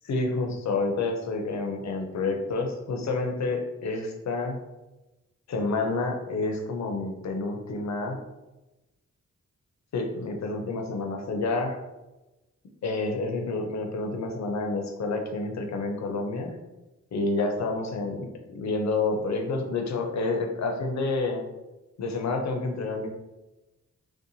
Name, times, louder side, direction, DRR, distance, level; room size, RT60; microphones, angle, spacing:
voice 1, 0.0-4.6 5.5-8.2 9.9-11.8 12.8-16.6 17.1-21.4 22.0-23.1, left 3 dB, 70° left, 3 dB, 0.5 m, -29 dB
2.7 x 2.1 x 2.6 m, 1.0 s
wide cardioid pair, 80°, 29 cm